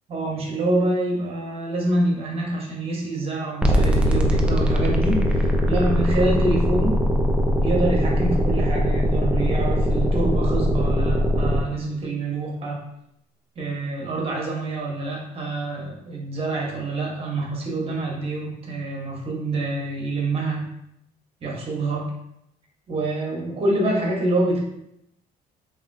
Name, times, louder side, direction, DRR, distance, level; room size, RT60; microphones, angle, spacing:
voice 1, 0.1-7.0 7.6-12.8 13.6-20.7 21.4-22.1 22.9-24.6, right 2 dB, 35° right, -2 dB, 0.9 m, -26 dB
sound 1, 3.6-11.6, equal, 5° right, 0.3 m, -21 dB
2.9 x 2.5 x 2.6 m, 0.79 s
cardioid pair, 110°, 17 cm